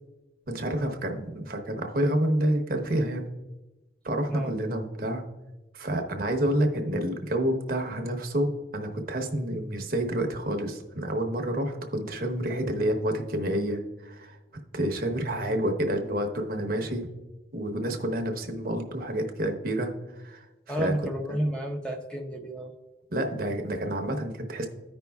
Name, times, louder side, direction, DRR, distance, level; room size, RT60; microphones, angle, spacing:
voice 1, 0.5-3.3 4.0-5.3 5.7-14.4 14.7-17.1 17.5-20.9 21.3-21.4 23.1-24.7, right 1 dB, 55° right, 4 dB, 0.9 m, -29 dB
voice 2, 20.7-22.7, right 1 dB, 5° left, 2 dB, 0.6 m, -31 dB
14.5 x 5.3 x 2.3 m, 1.1 s
head